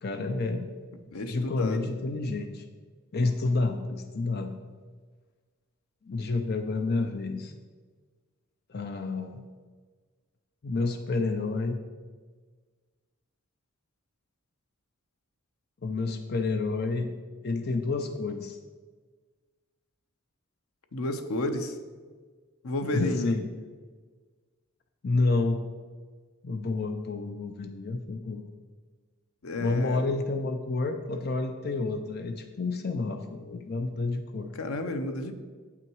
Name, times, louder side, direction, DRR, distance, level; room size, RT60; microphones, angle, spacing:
voice 1, 0.0-0.7 1.2-2.6 3.1-4.5 6.0-7.5 8.7-9.4 10.6-11.8 15.8-17.1 17.4-18.6 22.9-23.4 25.0-25.6 26.4-28.4 29.6-34.5, left 3 dB, 50° left, 5 dB, 0.5 m, -29 dB
voice 2, 1.1-1.8 20.9-21.8 22.6-23.4 29.4-30.0 34.5-35.3, left 2 dB, 90° left, 8 dB, 0.7 m, -31 dB
8.1 x 5.9 x 4.6 m, 1.5 s
head